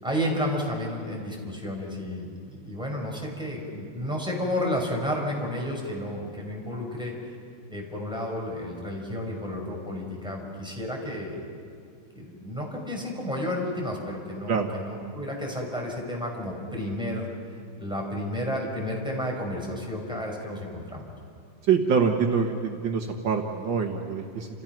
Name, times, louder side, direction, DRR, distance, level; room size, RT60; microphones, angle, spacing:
voice 1, 0.0-7.1 7.7-11.4 12.1-17.3 17.8-21.0, left 1 dB, ahead, -1 dB, 5.2 m, -31 dB
voice 2, 21.7-24.5, right 6 dB, 75° right, 3 dB, 1.0 m, -25 dB
30.0 x 28.5 x 6.0 m, 2.3 s
omnidirectional pair, 4.0 m